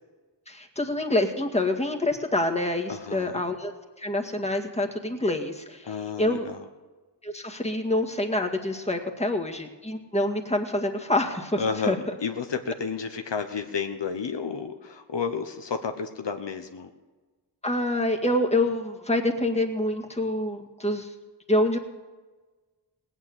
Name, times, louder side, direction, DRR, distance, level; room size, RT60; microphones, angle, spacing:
voice 1, 0.5-3.7 4.0-6.5 7.2-11.6 11.9-12.0 17.6-21.1 21.5-21.8, left 1 dB, 15° left, 2 dB, 1.9 m, -26 dB
voice 2, 2.9-3.4 5.8-6.6 11.6-16.9, left 5 dB, 75° left, 6 dB, 1.1 m, -31 dB
18.0 x 9.5 x 7.9 m, 1.3 s
wide cardioid pair, 75°, 42 cm